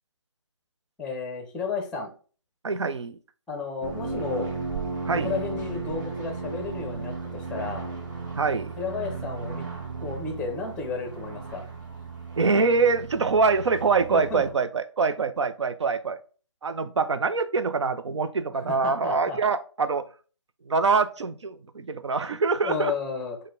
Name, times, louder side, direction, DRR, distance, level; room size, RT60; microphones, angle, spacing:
voice 1, 1.0-2.1 3.5-4.5 5.2-7.9 8.8-9.6 10.0-11.6 14.1-14.4 18.7-19.4 22.6-23.4, left 4 dB, 5° left, 0.6 m, -32 dB
voice 2, 2.6-3.2 5.1-5.3 8.4-8.7 12.4-16.2 16.6-20.0 20.7-22.9, right 4 dB, 70° right, 0.6 m, -24 dB
sound 1, 3.8-14.5, right 4 dB, 40° right, 1.2 m, -35 dB
6.4 x 2.2 x 3.8 m
figure-of-eight pair, 150°, 16 cm